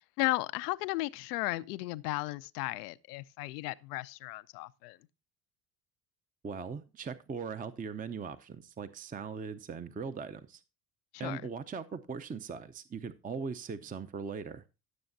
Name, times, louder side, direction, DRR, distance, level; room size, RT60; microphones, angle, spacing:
voice 1, 0.2-5.0 11.1-11.4, left 20 dB, 80° left, 0.6 m, -35 dB
voice 2, 6.4-10.6 11.2-14.6, right 5 dB, 20° right, 0.6 m, -40 dB
15.5 x 7.0 x 2.6 m
hypercardioid pair, 65°, 47 cm